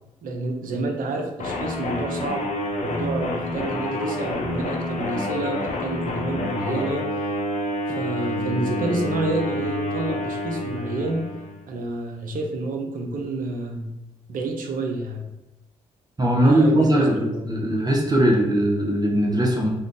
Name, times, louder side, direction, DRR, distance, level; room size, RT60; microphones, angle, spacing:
voice 1, 0.2-2.5 2.8-7.2 7.9-11.2 11.7-13.9 14.3-15.2 16.4-17.6, right 2 dB, 65° right, 2 dB, 0.7 m, -29 dB
sound 1, 1.4-11.6, left 1 dB, 50° left, 0.6 m, -28 dB
voice 2, 16.2-19.7, right 1 dB, 25° right, -2 dB, 0.8 m, -20 dB
2.5 x 2.4 x 3.7 m, 0.93 s
hypercardioid pair, 45°, 15 cm